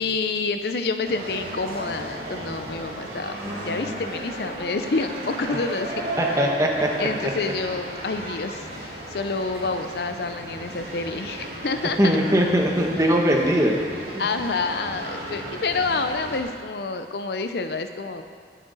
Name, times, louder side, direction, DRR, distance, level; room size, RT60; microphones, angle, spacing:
voice 1, 0.0-6.0 6.3-6.5 7.0-12.2 14.2-18.2, left 3 dB, 65° left, 8 dB, 0.6 m, -28 dB
sound 1, 1.0-16.4, right 1 dB, 55° right, 2.6 m, -34 dB
voice 2, 3.4-4.0 5.5-5.6 6.2-7.1 12.0-13.8 14.1-14.2, equal, 20° right, 0 dB, 1.2 m, -21 dB
20.0 x 7.5 x 4.1 m, 2.1 s
head